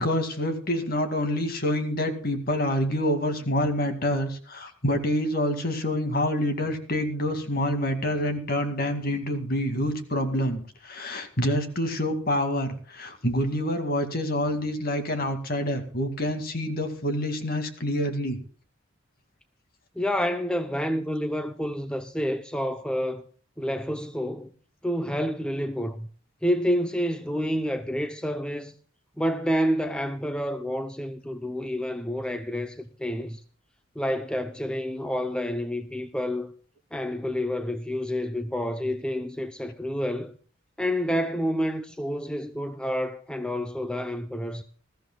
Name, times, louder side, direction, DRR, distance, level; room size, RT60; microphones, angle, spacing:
voice 1, 0.0-18.4, left 1 dB, 45° left, 2.2 m, -27 dB
voice 2, 20.0-23.2 23.6-24.5 24.8-26.1 26.4-28.7 29.2-33.4 34.0-36.5 36.9-40.3 40.8-44.6, equal, 5° left, 0.6 m, -29 dB
20.5 x 14.0 x 2.3 m
head